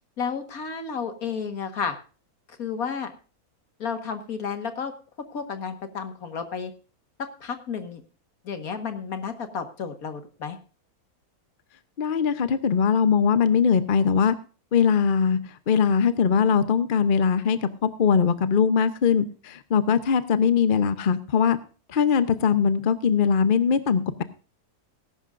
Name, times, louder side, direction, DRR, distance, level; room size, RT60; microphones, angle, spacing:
voice 1, 0.2-2.0 2.6-3.1 3.8-4.9 5.3-6.7 7.2-8.0 8.4-10.6, left 6 dB, 70° left, 8 dB, 2.0 m, -32 dB
voice 2, 12.0-14.3 14.7-15.4 15.7-21.6 21.9-24.2, left 6 dB, 45° left, 12 dB, 0.8 m, -21 dB
19.0 x 11.0 x 2.5 m, 0.37 s
omnidirectional pair, 1.6 m